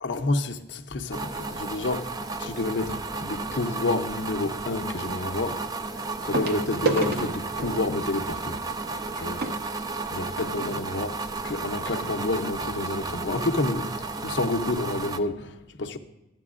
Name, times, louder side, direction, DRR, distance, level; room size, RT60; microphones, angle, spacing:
voice 1, 0.0-2.1 2.4-5.6 6.2-8.6 9.2-9.4 10.1-16.0, left 2 dB, 80° left, 0.7 m, -29 dB
sound 1, 1.1-15.2, right 3 dB, 20° right, 0.3 m, -33 dB
sound 2, 6.3-10.7 11.5-11.6 11.8-12.0 12.5-12.6, right 3 dB, 55° right, 0.7 m, -32 dB
12.5 x 9.0 x 2.4 m
head